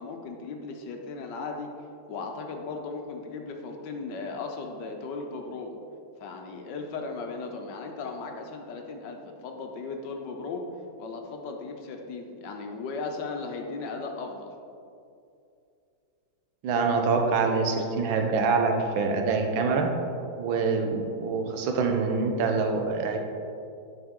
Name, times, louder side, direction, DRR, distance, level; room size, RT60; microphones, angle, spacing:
voice 1, 0.0-1.7 2.1-5.8 6.2-10.6 11.0-14.5, left 4 dB, 70° left, 3 dB, 1.2 m, -36 dB
voice 2, 16.6-20.0 20.4-23.3, right 4 dB, 85° right, 4 dB, 1.5 m, -25 dB
8.8 x 5.9 x 3.6 m, 2.5 s
omnidirectional pair, 2.2 m